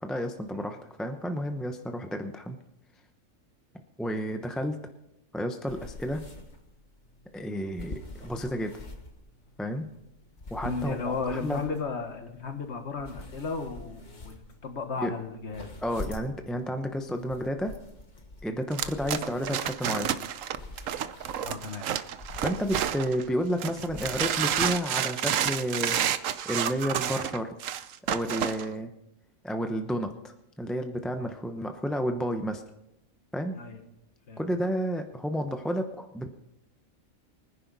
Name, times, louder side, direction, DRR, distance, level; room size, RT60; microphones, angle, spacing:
voice 1, 0.0-2.6 4.0-4.8 5.3-6.2 7.3-8.8 9.6-9.9 10.5-11.6 15.0-15.1 15.8-17.7 18.4-20.1 22.4-26.0 26.4-27.5 28.1-28.9 29.4-32.6 33.3-33.6 34.4-36.3, equal, ahead, 5 dB, 0.7 m, -31 dB
sound 1, 5.7-24.7, left 2 dB, 35° left, 1.6 m, -46 dB
voice 2, 10.6-16.2 21.4-21.9 31.2-31.3 33.5-33.8 34.3-34.5, left 4 dB, 55° left, 6 dB, 1.8 m, -35 dB
sound 2, 18.7-23.2 23.6-28.7, right 10 dB, 75° right, 1.1 m, -30 dB
24.0 x 10.5 x 4.1 m, 0.84 s
omnidirectional pair, 1.4 m